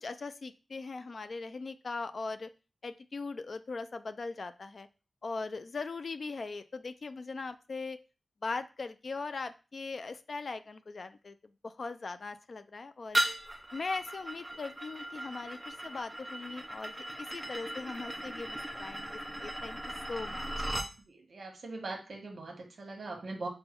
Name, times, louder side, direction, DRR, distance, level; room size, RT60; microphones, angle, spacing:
voice 1, 0.0-2.5 2.8-4.9 5.2-8.0 8.4-11.4 11.6-13.2 13.7-19.8 20.1-20.5, left 3 dB, 50° left, 11 dB, 0.3 m, -40 dB
sound 1, 13.1-20.9, right 1 dB, 10° right, 0.5 m, -37 dB
voice 2, 21.0-23.5, right 3 dB, 55° right, 3 dB, 1.2 m, -41 dB
5.3 x 2.2 x 4.3 m, 0.32 s
wide cardioid pair, 130°, 0 cm